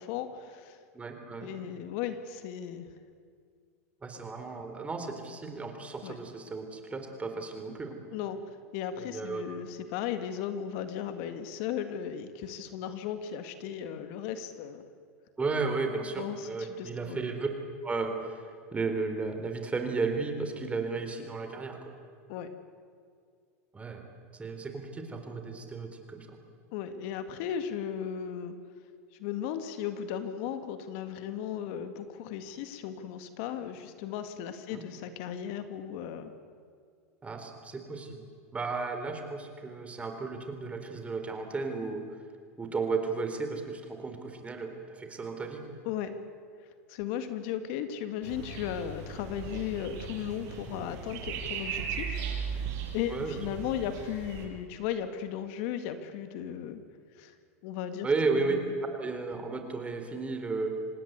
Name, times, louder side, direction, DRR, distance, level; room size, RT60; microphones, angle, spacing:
voice 1, 0.0-0.8 1.4-2.9 6.0-6.2 8.1-8.4 8.7-14.8 16.2-17.2 22.3-22.5 26.7-28.5 29.2-36.3 45.9-46.2 46.9-52.2 52.9-56.8 57.2-57.3 57.6-58.1 58.3-58.7, left 9 dB, 60° left, 9 dB, 2.1 m, -36 dB
voice 2, 0.9-1.5 4.0-8.0 9.0-9.5 15.4-17.5 17.8-18.4 18.7-21.9 23.7-24.0 24.3-26.4 34.7-34.8 37.2-38.2 38.5-42.0 42.6-45.6 52.5-52.6 53.1-53.4 58.0-58.6 58.9-60.8, right 4 dB, 15° right, 6 dB, 4.0 m, -34 dB
sound 1, 48.2-54.5, right 6 dB, 55° right, 6.7 m, -37 dB
26.5 x 19.5 x 8.2 m, 2.2 s
hypercardioid pair, 115°, 8 cm